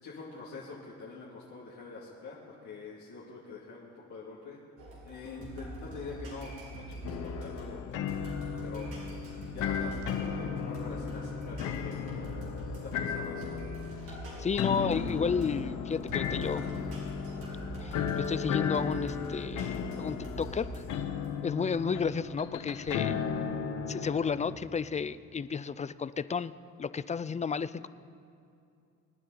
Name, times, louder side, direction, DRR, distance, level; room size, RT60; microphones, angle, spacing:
voice 1, 0.0-4.6 5.0-8.9 9.5-12.0 12.8-13.6, left 4 dB, 75° left, -6 dB, 2.4 m, -45 dB
sound 1, 4.8-21.3, right 1 dB, 85° right, 4.3 m, -44 dB
sound 2, 7.0-24.6, left 7 dB, 90° left, 1.0 m, -35 dB
voice 2, 14.1-16.6 17.8-20.8 21.4-23.2 23.9-26.5 26.8-27.9, left 6 dB, 25° left, 16 dB, 0.4 m, -32 dB
25.5 x 9.8 x 4.0 m, 2.5 s
cardioid pair, 90°, 30 cm